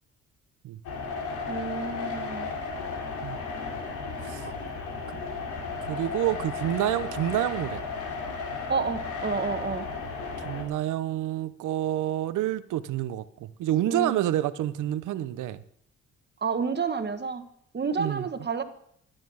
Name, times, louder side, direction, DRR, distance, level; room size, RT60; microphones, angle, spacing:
sound 1, 0.8-10.6, left 4 dB, 85° left, 3.0 m, -34 dB
voice 1, 1.5-2.5 8.7-9.9 13.9-14.2 16.4-17.4 17.7-18.6, right 5 dB, 35° right, 8 dB, 1.4 m, -30 dB
voice 2, 5.8-7.8 10.4-15.6 18.0-18.3, right 13 dB, 80° right, 13 dB, 0.8 m, -28 dB
13.0 x 9.2 x 6.3 m, 0.69 s
cardioid pair, 90°, 30 cm